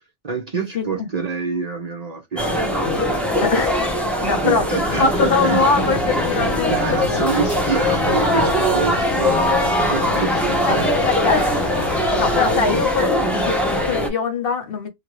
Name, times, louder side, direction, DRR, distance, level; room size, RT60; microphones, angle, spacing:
voice 1, 0.2-3.4 4.3-5.8 6.3-6.4 6.7-10.9 12.1-12.2, right 5 dB, 40° right, 0.7 m, -27 dB
voice 2, 0.7-1.1 3.4-3.9 4.2-4.7 5.0-7.3 10.7-10.8 11.1-11.7 12.2-14.9, left 4 dB, 55° left, 1.0 m, -22 dB
sound 1, 2.4-14.1, left 1 dB, ahead, 0.7 m, -21 dB
sound 2, 4.8-12.8, left 8 dB, 85° left, 0.9 m, -33 dB
2.8 x 2.6 x 3.0 m
omnidirectional pair, 1.2 m